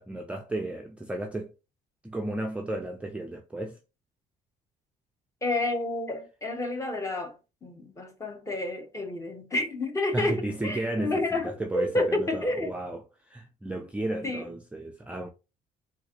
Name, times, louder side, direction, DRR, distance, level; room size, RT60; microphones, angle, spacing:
voice 1, 0.0-1.5 2.0-3.8 10.1-15.3, right 1 dB, 5° right, 0.4 m, -34 dB
voice 2, 5.4-12.7 14.2-14.4, left 2 dB, 20° left, 0.9 m, -30 dB
3.9 x 2.5 x 2.9 m
cardioid pair, 110°, 17 cm